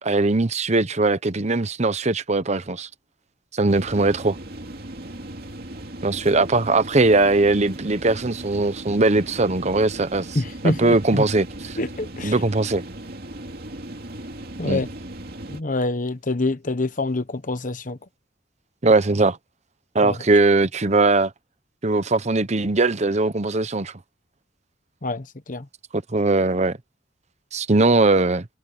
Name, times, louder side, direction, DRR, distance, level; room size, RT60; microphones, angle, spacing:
voice 1, 0.0-2.9 3.5-4.4 6.0-10.4 10.6-11.8 12.2-12.8 14.6-14.8 18.8-19.4 19.9-21.3 21.8-23.9 26.1-26.8 27.5-28.5, right 2 dB, 40° right, 0.9 m, -20 dB
sound 1, 3.7-15.6, right 1 dB, 55° right, 2.6 m, -37 dB
voice 2, 10.3-11.3 11.8-12.4 14.6-14.9 15.5-18.0 20.0-20.2 25.0-25.7, left 2 dB, 45° left, 1.1 m, -26 dB
head